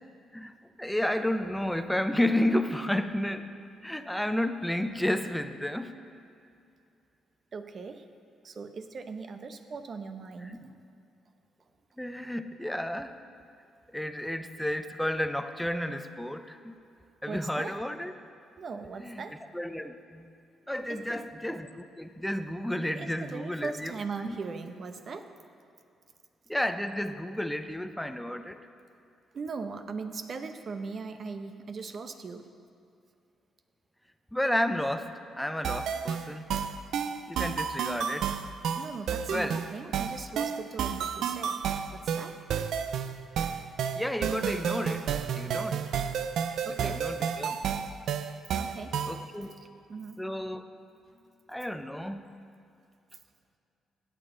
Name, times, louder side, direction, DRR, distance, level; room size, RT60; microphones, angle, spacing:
voice 1, 0.8-3.5 3.8-6.0 10.4-10.6 12.0-13.2 13.9-16.8 17.2-18.1 19.0-19.2 19.5-20.3 20.7-23.9 24.2-24.4 26.5-28.6 34.3-36.5 37.3-38.3 39.3-39.6 43.9-45.9 46.6-47.8 49.1-49.6 50.2-50.6 51.5-52.3, left 1 dB, 5° left, 9 dB, 0.6 m, -32 dB
voice 2, 7.5-8.1 8.4-10.8 17.3-17.8 18.6-19.4 20.9-21.3 22.9-25.3 29.3-32.5 38.7-41.6 41.9-42.4 46.7-47.1 48.5-49.0 49.6-50.2, right 4 dB, 50° right, 8 dB, 0.8 m, -39 dB
sound 1, 35.6-49.3, right 7 dB, 75° right, 0.5 m, -31 dB
16.5 x 9.0 x 3.8 m, 2.5 s
cardioid pair, 95°, 0 cm